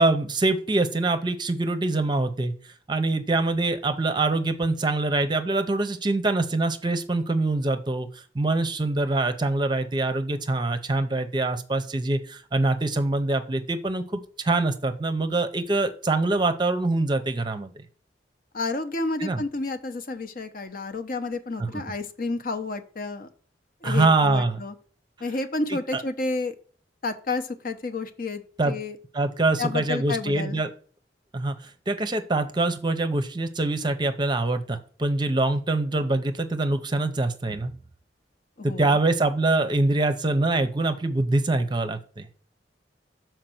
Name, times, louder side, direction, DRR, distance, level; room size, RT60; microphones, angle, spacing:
voice 1, 0.0-2.5 2.9-8.1 8.3-17.8 19.2-19.4 21.6-21.8 23.8-24.6 25.7-26.0 28.6-28.8 29.1-30.7 31.3-31.6 31.9-37.7 38.6-42.3, right 2 dB, 25° right, 9 dB, 0.7 m, -24 dB
voice 2, 18.5-23.3 23.8-24.7 25.2-26.6 27.0-29.0 29.6-30.6 38.6-39.0, left 3 dB, 50° left, 9 dB, 0.8 m, -30 dB
6.6 x 4.6 x 5.9 m, 0.43 s
head